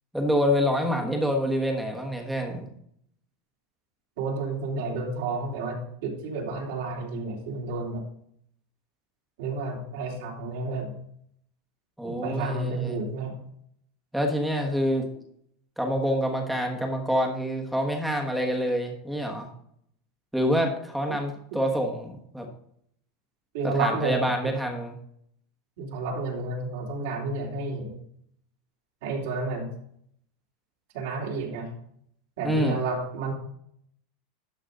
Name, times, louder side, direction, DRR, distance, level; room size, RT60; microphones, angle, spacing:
voice 1, 0.1-2.7 12.0-13.0 14.1-15.1 15.8-19.5 20.3-22.5 23.6-24.9 32.4-32.8, equal, ahead, 2 dB, 1.3 m, -26 dB
voice 2, 4.2-8.0 9.4-10.9 12.0-13.3 21.5-21.6 23.5-24.5 25.8-27.9 29.0-29.7 30.9-31.7 32.4-33.3, right 3 dB, 65° right, -1 dB, 3.2 m, -31 dB
11.5 x 6.3 x 3.8 m, 0.68 s
supercardioid pair, 165°, 0 cm